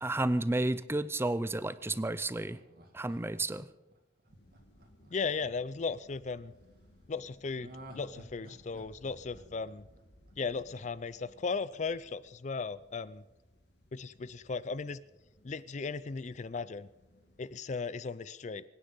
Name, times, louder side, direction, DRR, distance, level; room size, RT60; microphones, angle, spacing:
voice 1, 0.0-2.6 2.9-3.7, right 2 dB, 15° right, 16 dB, 0.5 m, -31 dB
Laughter, 1.8-6.0 7.6-10.6 10.9-11.0, right 1 dB, 60° right, 2.3 m, -53 dB
sound 1, 4.3-17.5, left 1 dB, 85° left, 2.8 m, -62 dB
voice 2, 5.1-6.5 7.1-9.9 10.4-13.2 13.9-15.0 15.4-16.9 17.4-18.6, left 4 dB, 45° left, 17 dB, 0.5 m, -36 dB
24.5 x 10.0 x 5.5 m, 1.0 s
head